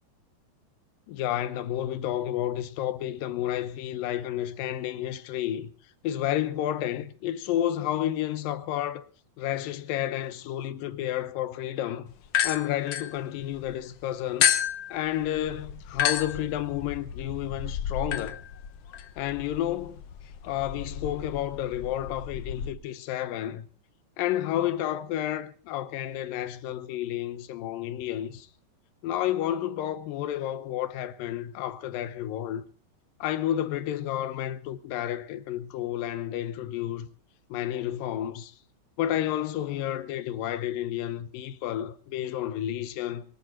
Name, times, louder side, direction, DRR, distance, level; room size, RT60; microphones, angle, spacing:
voice 1, 1.1-5.7 6.0-9.0 9.4-12.1 12.4-14.5 14.9-18.4 19.2-20.0 20.4-23.7 24.2-28.5 29.0-32.6 33.2-37.1 37.5-38.5 39.0-43.2, left 12 dB, 75° left, 2.5 m, -31 dB
sound 1, 12.3-13.7 14.4-22.7, left 9 dB, 90° left, 1.3 m, -31 dB
24.0 x 11.0 x 4.3 m
omnidirectional pair, 4.3 m